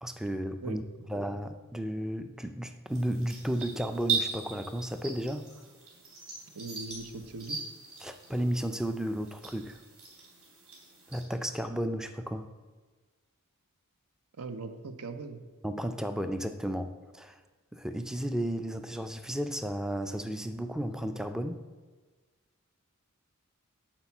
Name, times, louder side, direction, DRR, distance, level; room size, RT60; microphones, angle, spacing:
voice 1, 0.0-0.8 1.1-5.5 8.0-9.8 11.1-12.5 15.6-17.4 17.7-21.6, equal, ahead, 8 dB, 0.3 m, -33 dB
voice 2, 0.6-1.1 6.5-7.6 14.4-15.4, right 3 dB, 85° right, 9 dB, 0.7 m, -40 dB
sound 1, 2.9-11.2, right 5 dB, 70° right, 2.8 m, -39 dB
8.8 x 4.3 x 7.0 m, 1.3 s
head